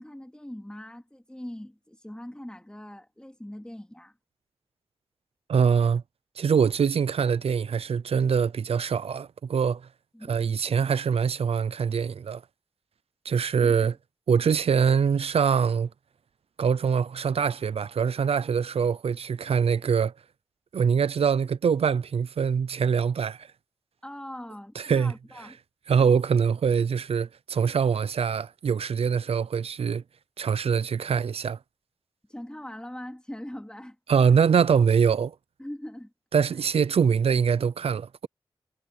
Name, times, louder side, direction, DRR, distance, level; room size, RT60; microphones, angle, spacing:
voice 1, 0.0-4.2 10.1-10.4 13.5-13.9 24.0-25.6 32.3-34.4 35.6-36.1, left 1 dB, 10° left, 3.0 m, -41 dB
voice 2, 5.5-6.0 6.4-9.8 10.3-12.4 13.2-13.9 14.3-15.9 16.6-20.1 20.7-23.5 24.8-25.1 25.9-30.0 30.4-31.6 34.1-35.3 36.3-38.3, right 6 dB, 80° right, 0.5 m, -24 dB
cardioid pair, 55°, 10 cm